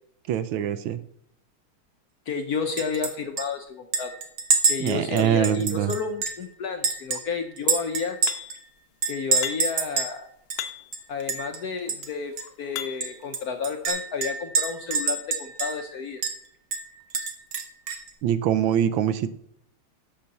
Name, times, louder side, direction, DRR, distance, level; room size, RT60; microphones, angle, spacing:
voice 1, 0.3-1.0 4.8-5.9 18.2-19.3, right 10 dB, 75° right, 13 dB, 1.3 m, -24 dB
voice 2, 2.3-4.1 4.7-8.2 9.1-10.2 11.1-16.2, left 6 dB, 65° left, 6 dB, 1.0 m, -31 dB
Chink clink, 2.8-3.1 3.4-3.5 3.9-6.4 6.8-8.6 9.0-10.1 10.5-10.6 10.9-11.6 11.9-12.1 12.4-12.5 13.0-15.9 16.2-16.4 16.7-18.1, right 4 dB, 55° right, 1.6 m, -27 dB
sound 1, 8.3-8.7 9.4-9.9 10.6-11.0 11.8-13.2 13.9-14.0, left 10 dB, 80° left, 1.6 m, -36 dB
11.0 x 6.8 x 4.0 m, 0.71 s
omnidirectional pair, 2.3 m